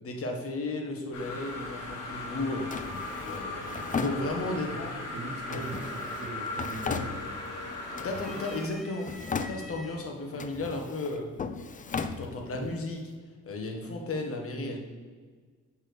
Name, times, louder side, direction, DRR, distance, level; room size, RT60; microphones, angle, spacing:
voice 1, 0.0-2.7 3.2-4.9 5.5-5.7 8.0-9.1 9.5-11.3 12.2-13.0 13.4-14.8, left 2 dB, 50° left, 2 dB, 1.4 m, -34 dB
sound 1, 1.1-8.6, left 2 dB, 80° left, 1.6 m, -38 dB
Drawer open or close, 2.7-4.8 5.5-7.6 7.9-8.7 9.0-10.0 10.3-12.8, left 5 dB, 25° left, 0.4 m, -37 dB
voice 2, 4.5-7.2, right 3 dB, 85° right, 2 dB, 1.2 m, -41 dB
sound 2, 7.5-7.7 8.1-10.0 10.9-11.0 12.2-12.7, left 1 dB, ahead, 0.8 m, -48 dB
7.4 x 6.1 x 3.4 m, 1.5 s
cardioid pair, 90°, 30 cm